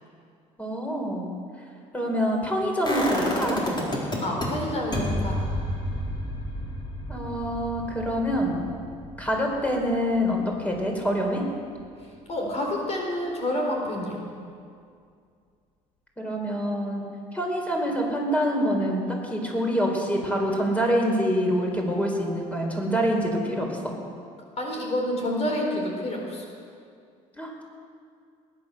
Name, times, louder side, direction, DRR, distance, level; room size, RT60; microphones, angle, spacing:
voice 1, 0.6-1.3 1.9-3.6 7.1-8.6 9.2-11.4 16.2-17.0 17.3-23.9 27.4-27.6, equal, 10° left, 0 dB, 4.4 m, -26 dB
sound 1, 2.8-4.5 4.9-10.8 11.1-11.2, left 1 dB, 30° left, 4.4 m, -31 dB
voice 2, 4.2-5.4 12.3-14.2 24.6-26.4, left 1 dB, 45° left, 0 dB, 4.0 m, -28 dB
20.0 x 10.5 x 6.7 m, 2.3 s
supercardioid pair, 90°, 15 cm